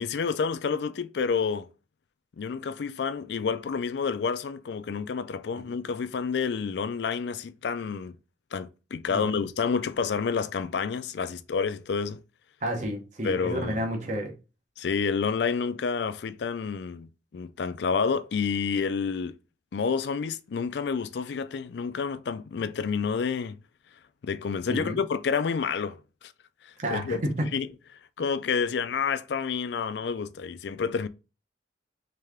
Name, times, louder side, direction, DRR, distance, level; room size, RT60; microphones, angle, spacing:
voice 1, 0.0-1.7 2.4-8.1 8.5-12.2 13.2-13.9 14.8-19.4 19.7-23.6 24.2-26.0 26.2-26.3 26.6-27.2 27.5-27.7 28.2-31.1, left 5 dB, 70° left, 0.4 m, -29 dB
voice 2, 9.1-9.4 12.6-14.3 24.7-25.0 26.8-27.5, equal, 40° right, 1.0 m, -31 dB
3.3 x 3.3 x 3.5 m
head